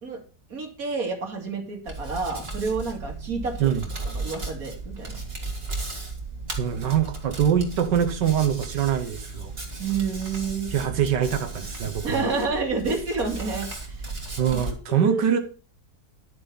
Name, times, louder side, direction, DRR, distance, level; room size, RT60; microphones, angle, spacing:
voice 1, 0.5-3.7 4.1-5.2 9.8-10.7 12.0-14.1 14.9-15.3, right 4 dB, 55° right, 2 dB, 2.9 m, -29 dB
Hands, 1.9-14.7, right 3 dB, 35° right, 3.0 m, -35 dB
voice 2, 6.6-9.5 10.7-12.3 14.4-15.4, right 9 dB, 90° right, 6 dB, 1.7 m, -24 dB
12.0 x 7.1 x 5.5 m, 0.38 s
omnidirectional pair, 1.8 m